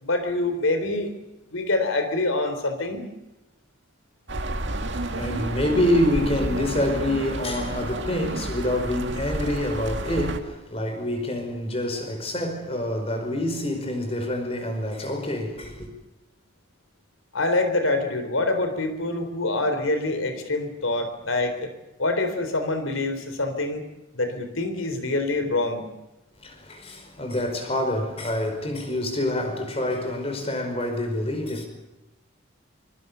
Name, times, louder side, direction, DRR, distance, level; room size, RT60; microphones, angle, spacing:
voice 1, 0.0-1.1 1.5-3.1 17.3-21.7 22.0-23.8 24.1-25.9, left 2 dB, 85° left, 3.8 m, -25 dB
sound 1, 4.3-10.4, right 1 dB, 65° right, 2.1 m, -31 dB
voice 2, 4.7-15.9 26.4-31.7, left 1 dB, 30° left, 5.1 m, -27 dB
24.5 x 23.0 x 6.9 m
head